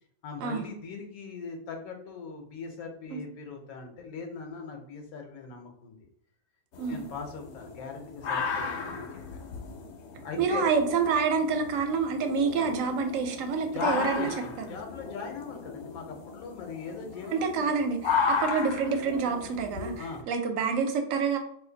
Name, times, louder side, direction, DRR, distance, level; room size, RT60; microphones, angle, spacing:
voice 1, 0.2-6.0 6.9-9.4 10.2-10.7 13.7-17.7 19.9-20.3, left 5 dB, 85° left, 3 dB, 1.1 m, -40 dB
sound 1, 6.7-20.2, left 5 dB, 65° left, 0.7 m, -35 dB
voice 2, 10.4-14.3 14.6-14.7 17.3-21.4, right 5 dB, 70° right, 6 dB, 0.9 m, -27 dB
2.6 x 2.5 x 3.8 m, 0.68 s
omnidirectional pair, 1.5 m